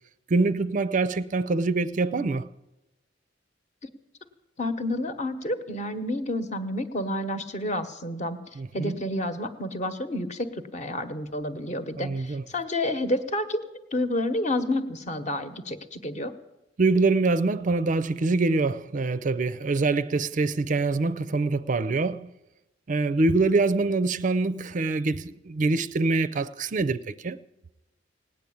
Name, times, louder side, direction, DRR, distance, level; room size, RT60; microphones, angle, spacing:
voice 1, 0.3-2.5 8.6-9.0 12.0-12.4 16.8-22.3 22.9-27.4, right 3 dB, 45° right, 0.4 m, -25 dB
voice 2, 4.6-8.4 8.7-16.3, left 1 dB, 40° left, 1.1 m, -30 dB
17.5 x 9.3 x 8.6 m
head